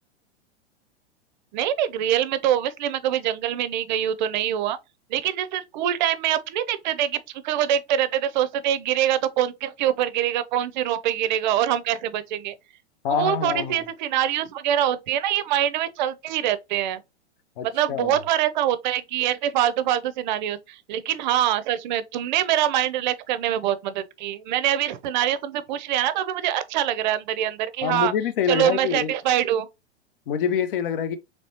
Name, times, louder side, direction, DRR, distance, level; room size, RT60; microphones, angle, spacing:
voice 1, 1.5-4.8 5.1-12.5 13.1-17.0 17.6-28.1 28.5-29.7, right 11 dB, 45° right, 0.5 m, -24 dB
voice 2, 13.0-13.8 17.6-18.2 27.8-29.1 30.3-31.2, left 7 dB, 50° left, 0.7 m, -26 dB
4.0 x 3.2 x 2.8 m
figure-of-eight pair, 100°, 34 cm